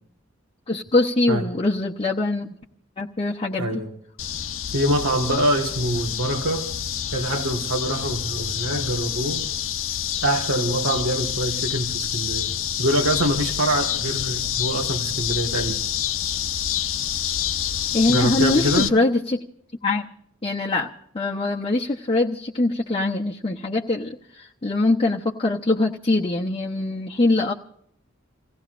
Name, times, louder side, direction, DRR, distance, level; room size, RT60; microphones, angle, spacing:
voice 1, 0.7-2.5 3.0-3.7 17.9-19.4 19.8-20.0 20.4-27.5, left 2 dB, 30° left, -1 dB, 0.8 m, -23 dB
voice 2, 3.6-3.9 4.7-6.7 7.1-9.5 10.2-12.5 12.8-15.8 18.1-19.0, right 1 dB, 85° right, 2 dB, 1.6 m, -24 dB
sound 1, 4.2-18.9, left 10 dB, 75° left, 0.8 m, -27 dB
29.0 x 17.0 x 2.5 m, 0.70 s
head